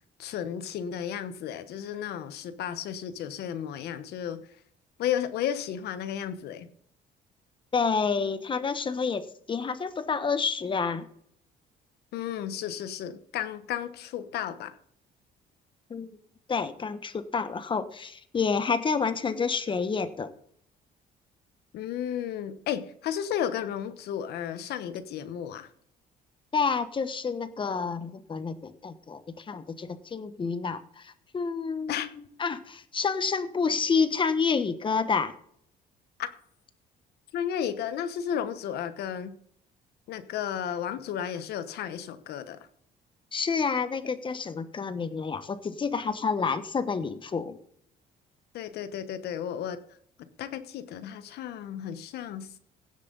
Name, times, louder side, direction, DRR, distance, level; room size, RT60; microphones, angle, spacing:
voice 1, 0.2-4.4 5.0-6.7 12.1-14.7 21.7-25.7 31.9-32.1 36.2-36.3 37.3-39.4 40.1-42.6 48.5-49.8 50.4-52.6, left 9 dB, 75° left, 11 dB, 1.1 m, -33 dB
voice 2, 7.7-11.1 15.9-16.1 16.5-20.3 26.5-35.3 43.3-47.6, left 5 dB, 30° left, 11 dB, 1.2 m, -29 dB
16.5 x 7.4 x 4.0 m, 0.65 s
cardioid pair, 110°, 17 cm